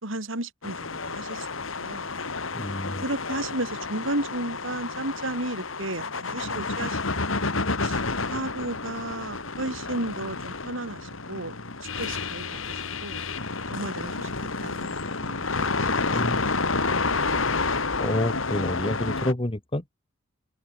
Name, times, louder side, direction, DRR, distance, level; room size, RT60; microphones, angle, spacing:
voice 1, 0.0-1.5 1.8-2.1 3.0-7.5 7.8-11.6 12.0-13.2 13.7-14.3 14.6-16.2, right 1 dB, 65° right, 5.9 m, -34 dB
sound 1, 0.6-19.3, left 3 dB, 70° left, 2.9 m, -30 dB
voice 2, 2.5-3.0 16.1-16.5 18.0-19.8, left 1 dB, 25° left, 1.6 m, -29 dB
head